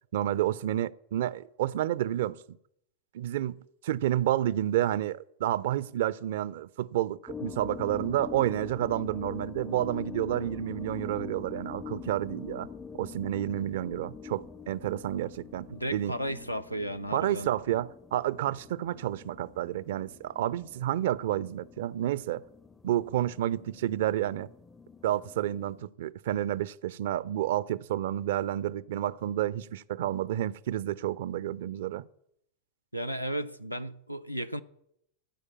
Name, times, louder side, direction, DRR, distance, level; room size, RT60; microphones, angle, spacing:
voice 1, 0.1-2.4 3.1-12.7 13.0-16.1 17.1-22.4 22.8-24.5 25.0-32.0, right 12 dB, 55° right, 0.4 m, -30 dB
sound 1, 7.3-25.9, left 6 dB, 10° left, 0.4 m, -45 dB
voice 2, 15.7-17.5 32.9-34.6, equal, 90° left, 0.5 m, -34 dB
14.0 x 5.0 x 8.4 m
figure-of-eight pair, 90°, 0 cm